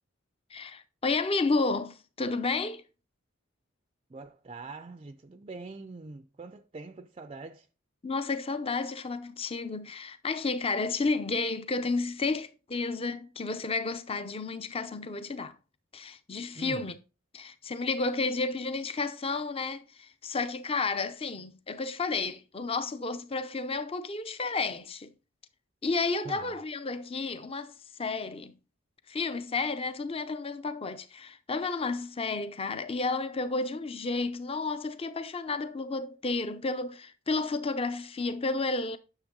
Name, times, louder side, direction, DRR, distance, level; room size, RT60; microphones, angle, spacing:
voice 1, 0.5-2.8 8.0-15.5 15.9-16.9 17.3-25.1 25.8-28.5 29.1-39.0, left 3 dB, 25° left, 0.6 m, -31 dB
voice 2, 4.1-7.7 16.5-16.9 26.2-26.6, right 3 dB, 30° right, 0.4 m, -43 dB
9.7 x 6.7 x 3.8 m
head